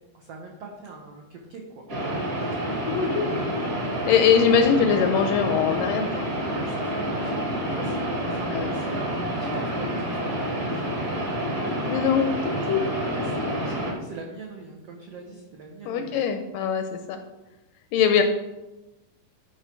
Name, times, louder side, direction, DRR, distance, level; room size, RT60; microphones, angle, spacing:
voice 1, 0.1-1.8 2.4-2.7 3.3-3.7 6.5-10.9 12.6-12.7 13.1-16.2, right 3 dB, 80° right, 0 dB, 1.4 m, -42 dB
sound 1, 1.9-13.9, equal, 40° right, 1.2 m, -28 dB
voice 2, 2.9-3.3 4.1-6.3 8.5-8.7 11.9-12.8 15.9-17.2 17.9-18.2, left 7 dB, 80° left, 6 dB, 2.0 m, -22 dB
11.0 x 4.8 x 4.5 m, 1.0 s
omnidirectional pair, 4.2 m